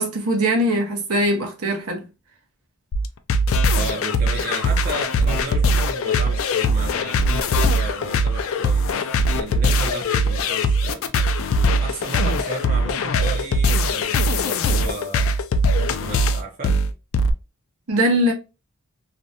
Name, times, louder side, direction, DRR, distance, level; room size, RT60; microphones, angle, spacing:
voice 1, 0.0-2.0 17.9-18.3, right 1 dB, 75° right, 0.7 m, -21 dB
sound 1, 2.9-17.3, equal, 60° left, 0.3 m, -20 dB
voice 2, 3.7-11.0 11.8-15.3 15.8-16.8, right 2 dB, 40° right, 0.5 m, -34 dB
2.5 x 2.1 x 2.6 m
head